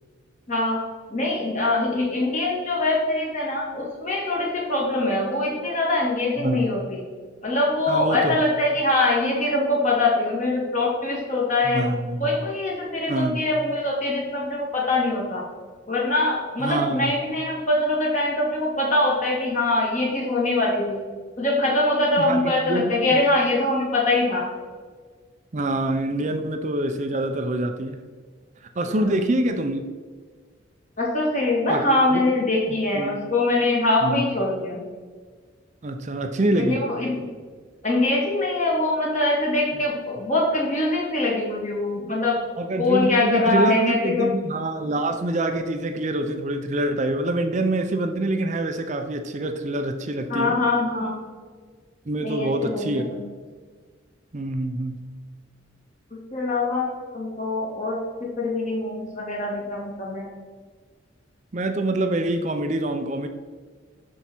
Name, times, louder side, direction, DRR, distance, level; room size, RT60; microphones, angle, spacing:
voice 1, 0.5-0.8 1.1-7.0 7.4-15.4 15.9-21.0 21.4-24.5 28.9-29.1 31.0-34.8 36.5-37.3 37.8-42.4 42.8-44.3 50.3-51.2 52.2-53.2 56.3-58.0 58.4-60.3, left 2 dB, 40° left, -3 dB, 2.3 m, -23 dB
voice 2, 7.9-8.4 11.6-12.3 13.1-13.4 16.6-17.2 22.2-23.2 25.5-28.0 28.6-29.8 31.7-31.9 32.1-32.2 32.7-33.2 34.0-34.2 35.8-36.8 42.6-50.5 52.1-53.0 54.3-55.0 61.5-63.3, right 1 dB, 40° right, 6 dB, 0.5 m, -25 dB
11.5 x 4.7 x 4.4 m, 1.5 s
head